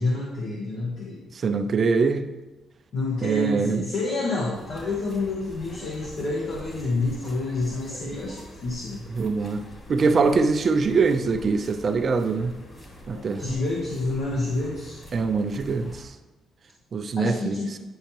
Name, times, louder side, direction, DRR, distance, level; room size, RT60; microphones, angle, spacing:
voice 1, 0.0-1.2 2.9-9.0 13.4-15.0 17.2-17.8, left 2 dB, 70° left, -3 dB, 1.3 m, -28 dB
voice 2, 1.3-2.3 3.2-3.8 9.1-9.6 9.9-12.5 13.1-13.5 15.1-16.1 16.9-17.6, right 4 dB, 45° right, 8 dB, 0.5 m, -23 dB
sound 1, 4.5-16.1, equal, 25° left, 2.0 m, -44 dB
10.0 x 5.6 x 2.9 m, 1.1 s
cardioid pair, 90°, 0 cm